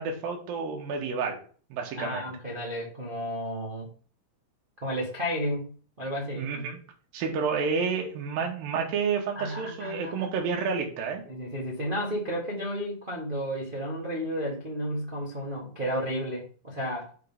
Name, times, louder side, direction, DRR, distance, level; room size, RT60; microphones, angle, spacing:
voice 1, 0.0-1.4 1.7-2.3 6.3-6.8 7.1-11.2, right 5 dB, 70° right, 0 dB, 3.2 m, -30 dB
voice 2, 1.9-3.9 4.8-5.7 6.0-6.5 9.3-10.3 11.2-17.1, equal, 50° right, -3 dB, 0.6 m, -32 dB
7.5 x 3.7 x 5.3 m, 0.41 s
omnidirectional pair, 4.4 m